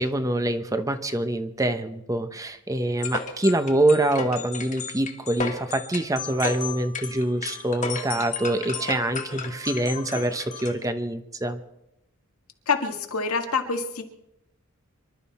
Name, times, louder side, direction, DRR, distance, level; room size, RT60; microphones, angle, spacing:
voice 1, 0.0-11.6, right 1 dB, 15° right, 9 dB, 0.8 m, -25 dB
sound 1, 3.0-10.8, left 4 dB, 35° left, 1.8 m, -34 dB
voice 2, 12.7-14.0, left 4 dB, 90° left, 4 dB, 1.9 m, -26 dB
25.0 x 12.0 x 4.2 m, 0.85 s
head